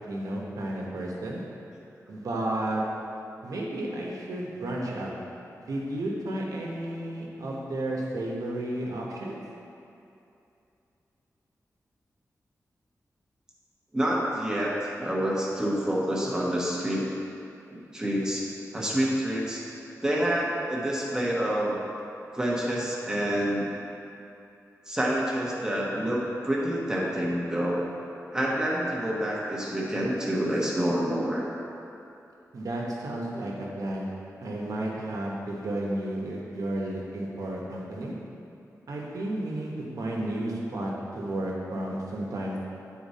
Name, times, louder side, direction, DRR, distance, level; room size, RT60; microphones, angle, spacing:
voice 1, 0.1-1.4 2.1-2.8 3.4-5.1 5.6-9.4 32.5-34.1 34.4-38.1 38.9-42.6, right 1 dB, 75° right, -3 dB, 1.2 m, -32 dB
voice 2, 13.9-14.7 15.0-17.1 17.7-19.6 20.0-21.8 22.3-23.6 24.9-27.8 28.3-31.5, equal, 10° right, -4 dB, 1.1 m, -27 dB
9.2 x 4.6 x 4.2 m, 2.7 s
wide cardioid pair, 170°, 6 cm